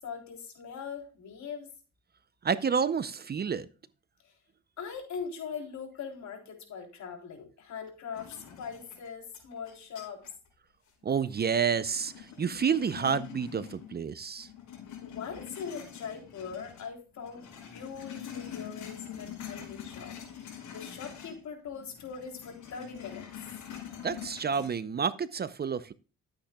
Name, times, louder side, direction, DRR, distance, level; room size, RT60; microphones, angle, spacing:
voice 1, 0.0-1.7 4.2-4.3 4.8-10.2 15.0-23.3, left 6 dB, 65° left, 3.5 m, -41 dB
voice 2, 2.4-3.7 11.0-14.5 24.0-25.9, right 6 dB, 35° right, 0.6 m, -29 dB
sound 1, 8.1-10.5 10.9-14.1 14.4-16.9 17.2-21.4 21.7-24.7, left 9 dB, 80° left, 5.0 m, -45 dB
13.0 x 8.7 x 2.3 m
cardioid pair, 90°, 30 cm